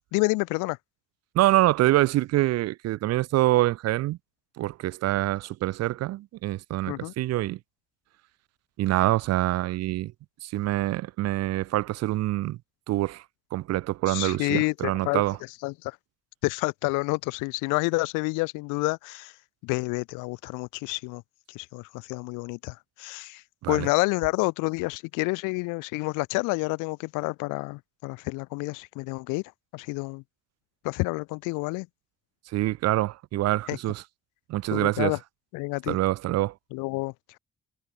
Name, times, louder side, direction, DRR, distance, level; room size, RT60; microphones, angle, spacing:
voice 1, 0.1-0.8 6.9-7.1 14.1-15.2 15.6-16.0 16.4-19.3 19.6-21.2 21.5-23.4 23.7-29.4 29.7-30.2 30.8-31.9 33.7-33.8 34.7-35.2 35.5-36.0 36.7-37.1, left 26 dB, 75° left, 0.6 m, -29 dB
voice 2, 1.3-4.2 4.6-7.6 8.8-10.1 10.4-12.6 12.9-13.2 13.5-15.4 23.6-23.9 32.5-34.0 34.5-35.2 35.9-36.5, right 16 dB, 55° right, 0.4 m, -25 dB
hypercardioid pair, 45°, 31 cm